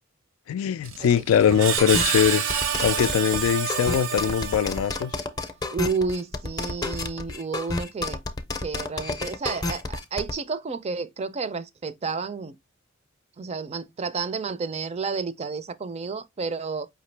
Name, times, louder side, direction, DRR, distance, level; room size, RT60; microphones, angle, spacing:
voice 1, 0.5-5.1, left 8 dB, 80° left, 0.3 m, -22 dB
Screech, 0.8-5.1, right 7 dB, 70° right, 0.7 m, -28 dB
sound 1, 1.8-10.3, left 3 dB, 20° left, 0.5 m, -30 dB
voice 2, 5.7-8.2 8.6-12.5 13.4-16.9, right 4 dB, 30° right, 0.4 m, -31 dB
5.1 x 2.8 x 3.2 m
head